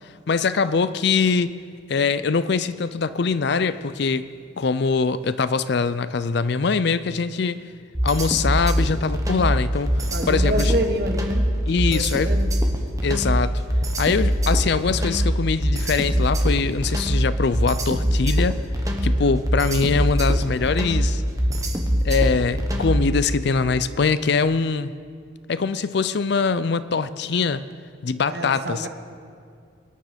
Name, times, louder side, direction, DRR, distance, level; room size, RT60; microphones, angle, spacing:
voice 1, 0.3-1.5 1.9-4.3 4.6-7.6 8.0-10.0 10.3-10.8 11.7-12.3 13.0-13.6 14.0-18.6 19.0-21.2 22.0-24.9 25.5-27.6 28.0-28.9, left 4 dB, 55° left, 15 dB, 0.5 m, -23 dB
sound 1, 7.9-23.2, equal, 15° right, 1.2 m, -22 dB
voice 2, 10.1-12.5 19.0-19.4 28.3-28.9, right 1 dB, 50° right, 5 dB, 1.3 m, -28 dB
22.5 x 9.7 x 5.1 m, 2.2 s
head